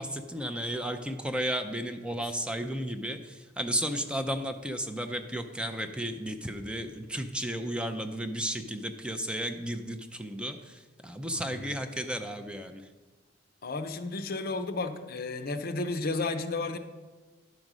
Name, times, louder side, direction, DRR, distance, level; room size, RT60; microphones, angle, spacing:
voice 1, 0.0-12.8, equal, 5° right, 7 dB, 0.5 m, -33 dB
voice 2, 11.3-11.7 13.6-16.8, left 3 dB, 55° left, 7 dB, 0.7 m, -33 dB
10.5 x 5.2 x 6.1 m, 1.3 s
head